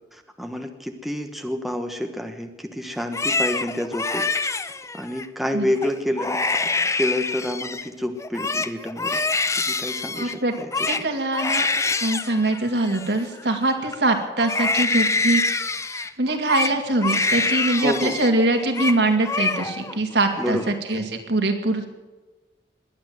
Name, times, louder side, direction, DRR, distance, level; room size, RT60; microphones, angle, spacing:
voice 1, 0.1-4.2 4.9-6.4 6.9-9.2 9.6-11.0 17.8-18.2 20.4-20.6, left 1 dB, ahead, 4 dB, 1.2 m, -28 dB
Crying sobbing, 3.0-5.3 5.8-5.9 6.2-7.9 8.2-14.0 14.4-18.3 18.6-19.0 19.2-20.0 20.3-20.9, left 3 dB, 15° left, 0.6 m, -25 dB
voice 2, 10.2-10.5 10.9-11.7 12.0-15.4 15.9-21.9, right 2 dB, 80° right, 4 dB, 2.4 m, -23 dB
21.0 x 8.9 x 7.7 m, 1.2 s
head